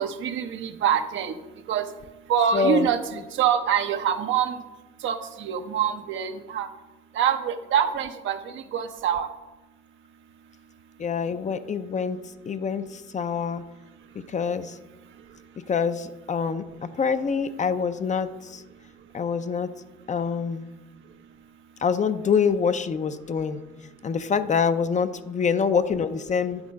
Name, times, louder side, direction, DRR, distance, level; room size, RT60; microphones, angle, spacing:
voice 1, 0.0-1.3 1.7-1.9 2.3-4.6 5.0-6.7 7.1-9.3, right 8 dB, 75° right, 8 dB, 0.7 m, -25 dB
voice 2, 2.5-2.9 11.0-12.2 12.5-13.6 14.3-14.8 15.7-18.6 19.1-19.7 20.1-20.7 21.8-23.6 24.0-26.6, left 6 dB, 35° left, 11 dB, 0.5 m, -25 dB
9.7 x 3.7 x 5.2 m, 1.1 s
supercardioid pair, 65°, 20 cm